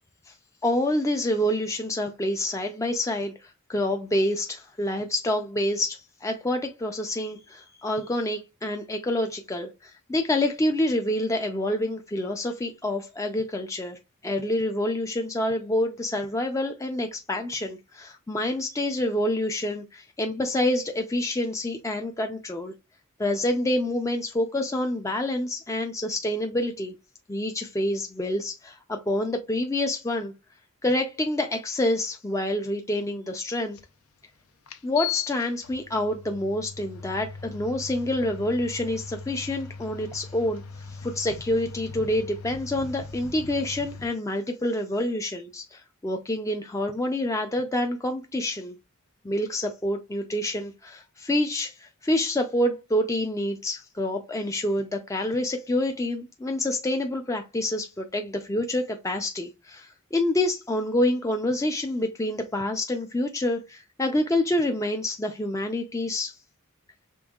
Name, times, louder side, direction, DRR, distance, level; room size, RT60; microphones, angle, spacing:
voice 1, 0.6-22.7 23.2-26.9 27.3-30.3 30.8-33.8 34.8-48.8 49.2-66.4, left 1 dB, 15° left, 0.4 m, -27 dB
sound 1, 33.7-33.8 34.7-44.0, left 7 dB, 90° left, 0.7 m, -39 dB
5.3 x 3.5 x 2.3 m
head